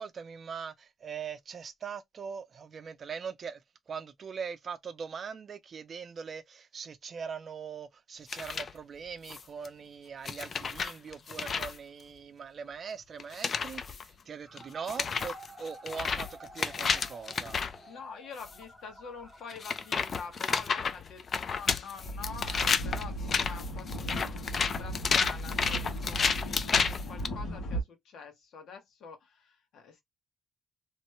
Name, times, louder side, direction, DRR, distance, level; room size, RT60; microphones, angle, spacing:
voice 1, 0.0-3.6 3.9-17.6, right 6 dB, 50° right, 0.5 m, -41 dB
sound 1, 8.3-8.7 9.3-9.7 10.3-11.8 13.2-14.0 14.6-14.7 14.9-17.8 18.4-18.6 19.5-27.3, left 5 dB, 45° left, 0.4 m, -31 dB
sound 2, 14.4-20.6, right 1 dB, 5° right, 0.8 m, -52 dB
voice 2, 17.9-30.0, left 5 dB, 80° left, 1.1 m, -46 dB
sound 3, 22.0-27.8, right 1 dB, 65° left, 1.7 m, -37 dB
3.1 x 2.1 x 3.0 m
cardioid pair, 100°, 0 cm